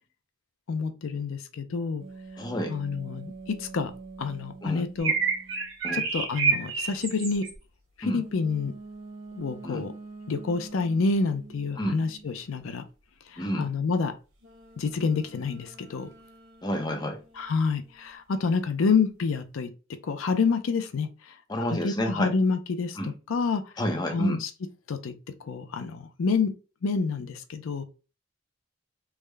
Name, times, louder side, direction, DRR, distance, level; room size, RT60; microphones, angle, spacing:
voice 1, 0.7-2.0 2.7-3.9 4.2-5.1 5.9-7.4 8.0-8.7 9.3-9.9 10.3-12.8 13.3-14.1 14.8-16.1 17.4-19.7 20.0-21.3 21.7-23.6 24.1-24.5 24.9-25.1 25.4-26.5 26.8-27.8, left 4 dB, 80° left, 0.5 m, -28 dB
sound 1, 2.0-5.8 8.1-12.4 14.4-18.2, right 3 dB, 90° right, 1.2 m, -46 dB
voice 2, 2.4-2.8 4.6-4.8 5.8-6.0 8.0-8.2 9.6-9.8 11.8-12.0 13.4-13.7 16.6-17.2 21.5-22.3 23.0-23.1 23.8-24.4, equal, 20° left, 0.6 m, -29 dB
sound 2, 5.0-7.5, right 5 dB, 70° right, 1.2 m, -28 dB
3.5 x 2.1 x 3.3 m
head